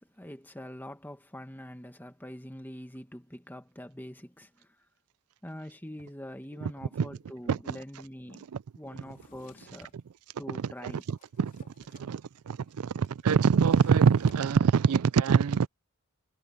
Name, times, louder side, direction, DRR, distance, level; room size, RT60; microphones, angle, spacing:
voice 1, 0.0-4.7 5.4-8.4 8.8-9.9 10.4-11.0, equal, 10° left, 1.7 m, -44 dB
Drawer open or close, 9.0-10.0 10.6-12.1 12.3-12.4 12.7-14.5, left 2 dB, 40° left, 3.7 m, -58 dB
voice 2, 10.5-11.7 11.9-15.7, right 6 dB, 80° right, 0.4 m, -25 dB
head